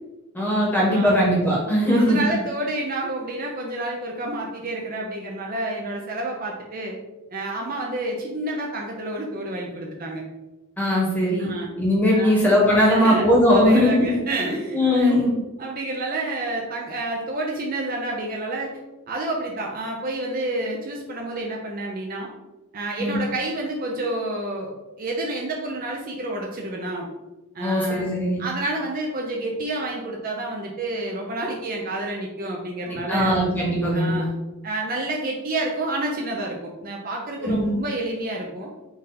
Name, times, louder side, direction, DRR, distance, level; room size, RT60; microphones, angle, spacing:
voice 1, 0.3-2.2 10.8-11.5 11.8-14.1 14.7-15.3 23.0-23.1 27.6-28.4 32.9-34.3 37.4-37.7, left 1 dB, 10° left, -5 dB, 1.0 m, -19 dB
voice 2, 0.9-1.2 1.9-7.0 7.3-10.2 11.4-11.7 12.1-12.4 12.8-15.2 15.6-18.7 19.1-22.3 22.7-27.1 27.5-33.4 33.9-34.3 34.6-38.7, right 2 dB, 40° right, -1 dB, 0.5 m, -29 dB
3.8 x 2.5 x 4.1 m, 1.1 s
head